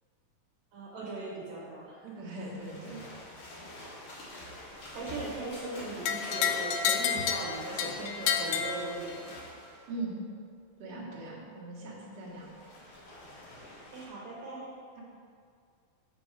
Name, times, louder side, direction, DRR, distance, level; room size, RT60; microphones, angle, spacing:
voice 1, 0.7-2.2 4.9-9.3 13.9-14.7, right 2 dB, 70° right, -5 dB, 2.6 m, -39 dB
voice 2, 2.2-3.0 9.9-10.1 10.8-12.5 14.9-15.0, right 2 dB, 50° right, -7 dB, 2.3 m, -40 dB
sound 1, 2.3-9.9 12.1-14.1, left 1 dB, 50° left, 1.7 m, -46 dB
sound 2, 6.0-9.4, left 7 dB, 80° left, 1.9 m, -30 dB
7.1 x 5.4 x 4.8 m, 2.2 s
omnidirectional pair, 4.1 m